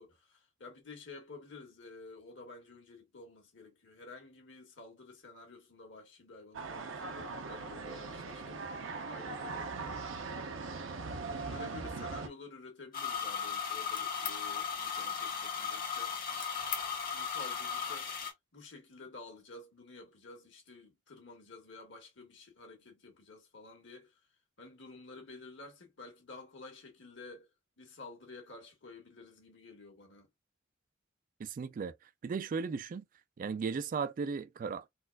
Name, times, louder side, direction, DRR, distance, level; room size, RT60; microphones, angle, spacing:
voice 1, 0.0-10.4 11.3-16.2 17.1-18.2 18.5-24.3 24.6-27.5 27.8-30.3, left 3 dB, 65° left, 1.6 m, -51 dB
sound 1, 6.5-12.3, right 4 dB, 80° right, 0.7 m, -40 dB
sound 2, 12.9-18.3, left 7 dB, 45° left, 1.2 m, -36 dB
voice 2, 31.4-31.9 32.2-33.0 33.4-34.9, right 5 dB, 45° right, 0.3 m, -36 dB
4.0 x 2.4 x 2.2 m
head